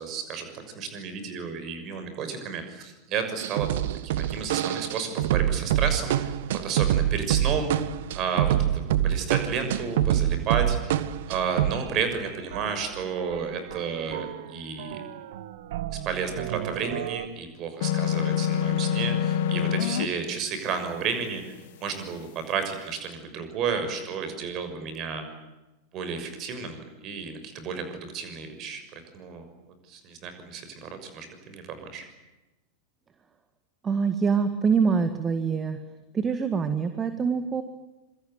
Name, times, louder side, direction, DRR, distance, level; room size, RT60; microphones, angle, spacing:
voice 1, 0.0-3.7 4.0-7.7 8.1-11.0 11.3-15.0 16.0-25.2 25.9-32.1, right 6 dB, 35° right, 8 dB, 6.4 m, -32 dB
sound 1, 3.4-11.9 12.1-12.2 12.5-14.5 14.8-17.3, right 11 dB, 55° right, 1.4 m, -27 dB
sound 2, 17.8-20.1, left 9 dB, 55° left, 1.7 m, -25 dB
voice 2, 33.8-35.8 36.1-37.6, right 5 dB, 20° right, 9 dB, 1.9 m, -25 dB
26.5 x 24.0 x 9.4 m, 1.0 s
figure-of-eight pair, 90°, 0 cm